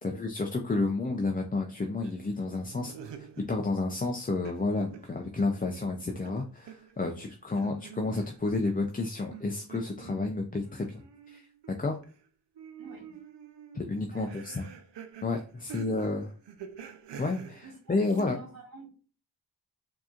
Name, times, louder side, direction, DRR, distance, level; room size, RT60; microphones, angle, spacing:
voice 1, 0.0-2.9 3.5-11.0 11.3-11.5 11.8-12.0 13.7-14.6 15.2-16.3 17.2-18.4, left 3 dB, 20° left, 2 dB, 0.5 m, -31 dB
sound 1, 2.0-3.7 4.0-5.8 6.2-8.6 9.3-12.3 12.5-18.2, right 7 dB, 85° right, 0.6 m, -48 dB
voice 2, 12.8-13.2 14.1-14.5 17.6-18.9, right 3 dB, 55° right, 1 dB, 1.3 m, -48 dB
4.7 x 2.9 x 2.4 m, 0.40 s
wide cardioid pair, 80°, 41 cm